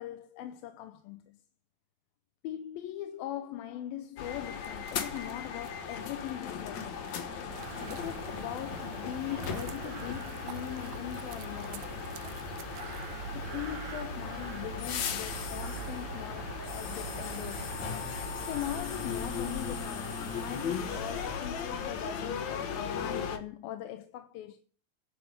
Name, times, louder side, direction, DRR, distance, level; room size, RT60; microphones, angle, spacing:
voice 1, 0.0-1.4 2.4-7.1 7.9-12.1 13.3-17.8 18.4-24.6, left 12 dB, 90° left, 2.6 m, -41 dB
sound 1, 4.2-23.4, left 7 dB, 60° left, 2.4 m, -37 dB
sound 2, 4.5-8.6 9.0-13.7, right 12 dB, 75° right, 2.4 m, -52 dB
sound 3, 7.5-21.4, right 7 dB, 55° right, 2.5 m, -44 dB
11.0 x 6.5 x 9.2 m
omnidirectional pair, 4.1 m